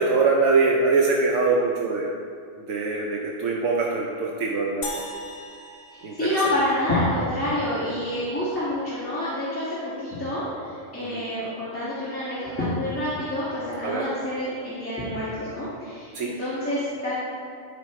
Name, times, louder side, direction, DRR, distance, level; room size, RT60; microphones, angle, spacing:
voice 1, 0.0-2.1 2.7-5.0 6.0-6.4 11.0-11.2 13.8-14.1 16.1-16.3, right 4 dB, 75° right, -1 dB, 1.0 m, -23 dB
sound 1, 4.8-7.3, left 1 dB, 60° left, 1.1 m, -38 dB
voice 2, 5.9-17.1, left 1 dB, 10° left, -13 dB, 1.9 m, -28 dB
13.0 x 5.2 x 3.2 m, 2.3 s
omnidirectional pair, 1.3 m